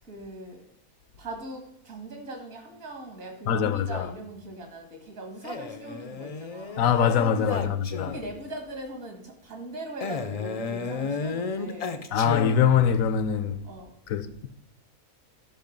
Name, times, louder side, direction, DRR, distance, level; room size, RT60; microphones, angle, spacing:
voice 1, 0.0-0.6 1.2-6.7 7.4-7.8 8.0-11.9 13.6-13.9, right 1 dB, 70° right, 2.4 m, -40 dB
voice 2, 3.5-4.1 6.8-8.2 12.1-13.6 14.1-14.5, left 7 dB, 75° left, 1.1 m, -23 dB
Male speech man speaking, 5.4-8.4 10.0-13.0, left 4 dB, 50° left, 0.4 m, -33 dB
11.5 x 5.2 x 5.2 m
omnidirectional pair, 1.5 m